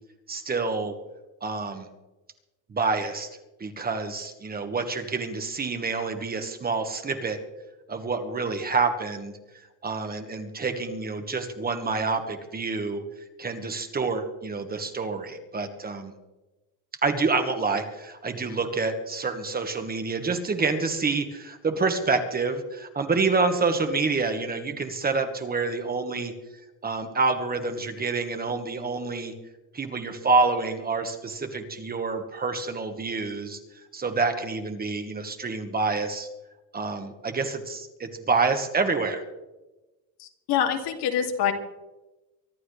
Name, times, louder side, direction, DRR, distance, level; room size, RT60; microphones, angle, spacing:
voice 1, 0.3-0.9 1.4-1.9 2.7-3.3 3.6-7.4 7.9-9.3 9.8-13.0 13.4-16.1 17.0-26.3 26.8-29.3 29.7-33.6 33.9-36.3 36.7-39.2, right 4 dB, 25° right, 6 dB, 1.4 m, -27 dB
voice 2, 40.2-41.5, left 8 dB, 85° left, 3 dB, 2.5 m, -25 dB
24.0 x 12.5 x 3.3 m, 1.1 s
cardioid pair, 165°, 38 cm